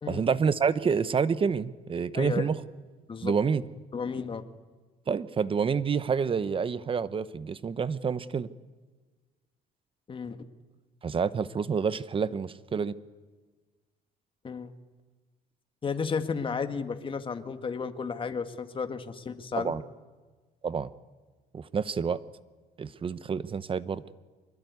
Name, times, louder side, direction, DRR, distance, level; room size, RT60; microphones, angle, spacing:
voice 1, 0.1-2.6 3.2-3.6 5.1-8.5 11.0-12.9 19.6-19.8 20.6-20.9 21.5-22.2 22.8-24.0, right 6 dB, 30° right, 16 dB, 0.9 m, -28 dB
voice 2, 3.9-4.4 10.1-10.4 14.4-14.7 15.8-19.7, left 5 dB, 30° left, 8 dB, 1.7 m, -33 dB
24.5 x 20.5 x 9.6 m, 1.3 s
cardioid pair, 110°, 17 cm